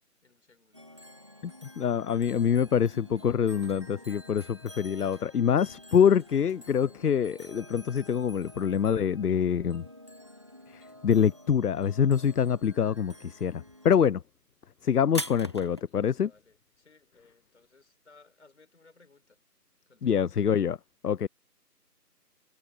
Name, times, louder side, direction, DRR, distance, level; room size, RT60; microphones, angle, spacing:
voice 1, 0.2-0.9 15.9-19.4 19.9-20.4, left 3 dB, 45° left, 6.9 m, -61 dB
sound 1, 0.7-14.0, left 1 dB, 20° right, 1.0 m, -50 dB
voice 2, 1.4-9.9 10.7-14.2 14.8-16.3 20.0-20.8 21.0-21.3, left 7 dB, 70° left, 0.6 m, -25 dB
sound 2, 2.9-10.7 11.0-11.6 11.9-15.8, equal, 15° left, 1.1 m, -44 dB
figure-of-eight pair, 165°, 48 cm